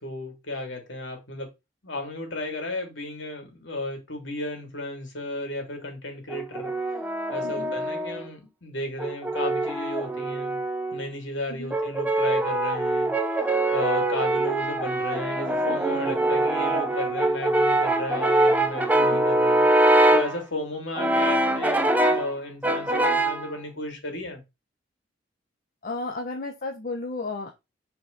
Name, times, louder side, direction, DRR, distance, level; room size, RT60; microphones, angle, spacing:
voice 1, 0.0-1.5 1.8-6.7 7.3-10.6 10.9-13.1 13.7-19.6 20.1-24.4, left 1 dB, 70° left, 3.0 m, -34 dB
Brass instrument, 6.3-8.2 9.0-11.0 11.7-20.4 21.0-22.3 22.6-23.5, right 1 dB, 10° right, 0.8 m, -23 dB
voice 2, 7.4-7.8 11.5-11.7 19.0-19.3 25.8-27.5, left 3 dB, 50° left, 1.0 m, -33 dB
6.2 x 4.8 x 4.1 m
head